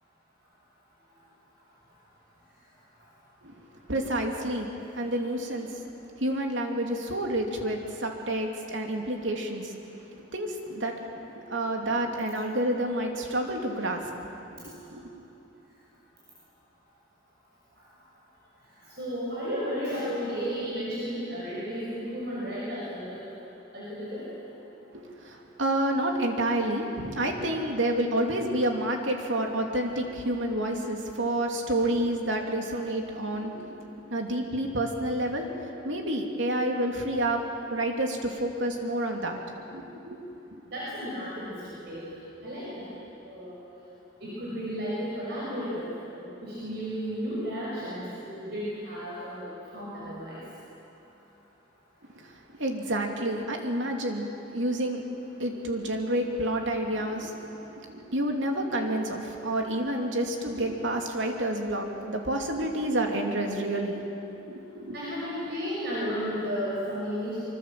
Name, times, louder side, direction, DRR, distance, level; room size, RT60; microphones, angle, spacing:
voice 1, 3.9-4.7 5.0-5.7 6.2-9.7 10.3-10.9 11.5-14.0 14.6-15.1 24.9-33.6 34.1-35.5 35.8-39.4 39.7-40.2 40.5-40.6 52.6-55.0 55.4-57.3 57.8-64.0 64.5-65.0, right 1 dB, 75° right, 2 dB, 2.9 m, -29 dB
voice 2, 19.0-23.2 23.7-24.3 40.7-41.6 41.9-42.0 42.4-42.9 43.2-43.6 44.2-45.9 46.2-50.4 64.9-67.4, equal, 55° right, -7 dB, 6.4 m, -33 dB
25.0 x 24.5 x 7.7 m, 2.9 s
head